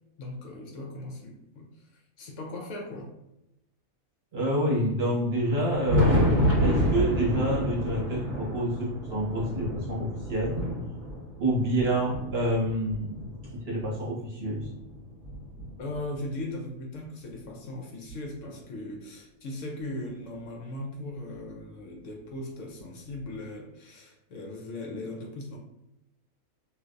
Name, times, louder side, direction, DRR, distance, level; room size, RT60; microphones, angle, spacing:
voice 1, 0.2-3.1 15.8-25.6, left 1 dB, 70° left, 0 dB, 0.9 m, -38 dB
voice 2, 4.3-10.6 11.4-14.7, right 1 dB, 50° right, -5 dB, 1.1 m, -28 dB
Thunder, 5.4-13.9 14.6-16.3 17.4-17.5 18.1-18.2 20.1-20.2 21.5-21.6 23.2-23.3, equal, 20° right, 1.5 m, -29 dB
3.2 x 2.5 x 2.5 m, 0.88 s
omnidirectional pair, 1.5 m